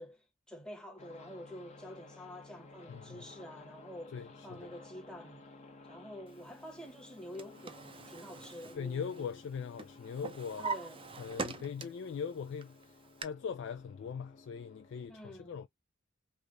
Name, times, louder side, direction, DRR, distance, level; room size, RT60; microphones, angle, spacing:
voice 1, 0.0-5.4 5.8-9.3 10.6-11.0 15.1-15.6, equal, 5° left, 0.9 m, -48 dB
sound 1, 1.0-15.1, left 3 dB, 35° left, 0.8 m, -56 dB
voice 2, 2.9-3.3 4.1-4.7 8.7-10.7 11.2-12.8 13.2-15.7, left 6 dB, 65° left, 0.3 m, -40 dB
Drawer open or close, 7.0-9.5 9.8-12.1 12.6-13.2, right 4 dB, 25° right, 0.5 m, -42 dB
3.2 x 2.2 x 3.7 m
head